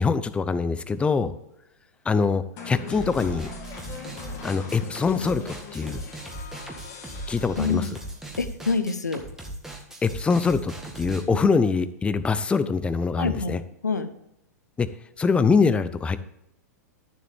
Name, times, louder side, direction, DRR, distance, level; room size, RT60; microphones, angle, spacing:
voice 1, 0.0-1.3 2.1-3.5 4.4-6.0 7.3-7.9 10.0-13.6 14.8-14.9 15.2-16.2, left 5 dB, 10° left, 13 dB, 0.6 m, -23 dB
sound 1, 2.6-8.2, left 4 dB, 40° left, 2.3 m, -41 dB
sound 2, 2.9-11.2, right 1 dB, 5° right, 1.7 m, -38 dB
voice 2, 7.6-7.9 8.4-9.2 13.2-14.1, left 4 dB, 85° left, 11 dB, 0.9 m, -26 dB
12.0 x 7.2 x 3.5 m, 0.80 s
figure-of-eight pair, 105°, 9 cm